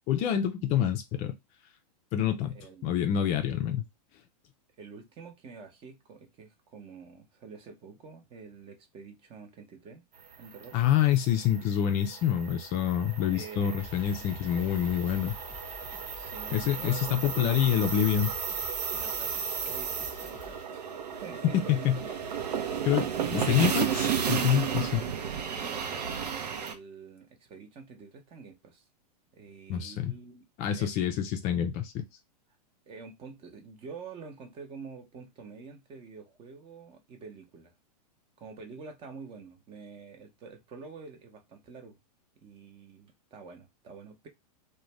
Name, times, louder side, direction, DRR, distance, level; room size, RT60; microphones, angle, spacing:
voice 1, 0.1-1.4 2.1-3.8 10.7-15.3 16.5-18.3 21.5-22.0 22.8-25.0 29.7-30.2 30.6-32.0, left 10 dB, 35° left, 0.4 m, -27 dB
voice 2, 2.5-3.0 4.8-10.0 10.4-10.8 13.3-13.7 16.1-17.7 18.9-19.3 19.6-20.9 21.2-22.3 25.5-28.8 29.3-30.4 30.8-31.0 32.9-37.7 38.4-42.0 42.4-44.3, right 5 dB, 25° right, 0.7 m, -47 dB
sound 1, 10.3-26.7, right 7 dB, 85° right, 0.6 m, -34 dB
sound 2, 13.8-20.7, left 3 dB, 5° left, 0.9 m, -48 dB
2.5 x 2.2 x 3.1 m
hypercardioid pair, 125°, 20 cm